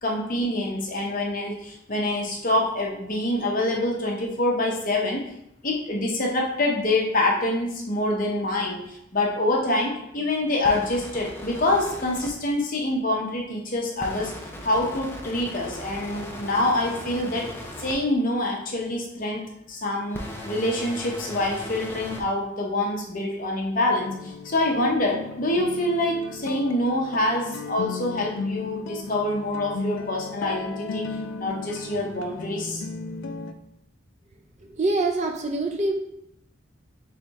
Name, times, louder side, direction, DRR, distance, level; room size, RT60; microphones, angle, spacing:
voice 1, 0.0-5.2 5.6-14.3 14.6-17.5 17.8-31.1 31.4-32.8, left 1 dB, 45° left, -1 dB, 0.8 m, -26 dB
sound 1, 10.6-12.3 14.0-17.9 20.1-22.2, left 1 dB, 10° left, 0.5 m, -38 dB
sound 2, 23.9-33.5, left 4 dB, 70° left, 0.4 m, -35 dB
voice 2, 34.6-35.9, right 2 dB, 35° right, 3 dB, 0.5 m, -25 dB
3.5 x 3.4 x 4.1 m, 0.77 s
head